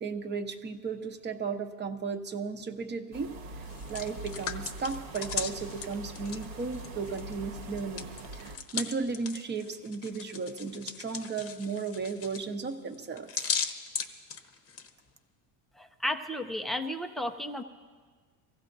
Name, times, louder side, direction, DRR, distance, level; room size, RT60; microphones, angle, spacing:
voice 1, 0.0-3.3 3.9-8.1 8.4-13.5, right 4 dB, 20° right, 7 dB, 0.8 m, -35 dB
sound 1, 3.1-8.6, right 2 dB, 80° right, 1.6 m, -43 dB
Hands, 3.6-7.3 7.6-14.9, left 7 dB, 30° left, 0.9 m, -37 dB
voice 2, 15.8-17.6, left 1 dB, ahead, 4 dB, 0.4 m, -33 dB
25.0 x 15.5 x 2.6 m, 1.5 s
cardioid pair, 135°, 47 cm